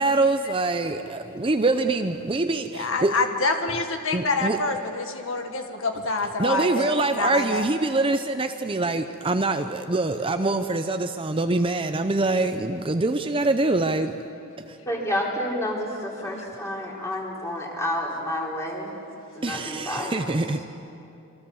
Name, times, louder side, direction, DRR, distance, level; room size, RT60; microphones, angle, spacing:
voice 1, 0.0-3.2 4.1-4.6 6.4-14.2 19.4-20.6, right 2 dB, 25° right, 0.7 m, -24 dB
voice 2, 2.7-7.6 16.2-16.5, left 3 dB, 60° left, 1.8 m, -27 dB
voice 3, 14.9-18.9 19.4-20.3, left 1 dB, 15° left, 4.0 m, -29 dB
27.0 x 24.0 x 7.2 m
head